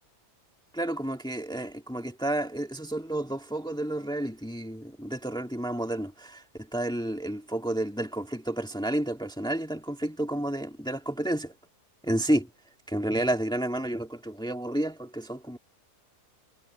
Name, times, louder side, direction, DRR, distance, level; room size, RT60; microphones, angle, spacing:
voice 1, 0.7-6.4 6.7-11.5 12.1-12.5 12.9-15.6, right 1 dB, 5° left, 2.0 m, -30 dB
omnidirectional pair, 1.8 m